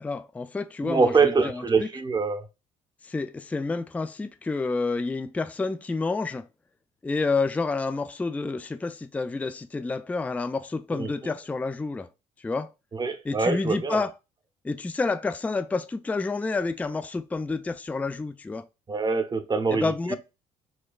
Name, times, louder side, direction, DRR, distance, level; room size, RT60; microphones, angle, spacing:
voice 1, 0.0-1.9 3.0-6.5 7.0-12.1 12.4-12.7 13.2-14.1 14.6-18.7 19.7-20.2, left 3 dB, 10° left, 0.3 m, -29 dB
voice 2, 0.8-2.4 11.0-11.3 13.0-14.0 18.9-20.2, right 4 dB, 25° right, 0.7 m, -24 dB
4.3 x 2.2 x 2.4 m
hypercardioid pair, 65°, 16 cm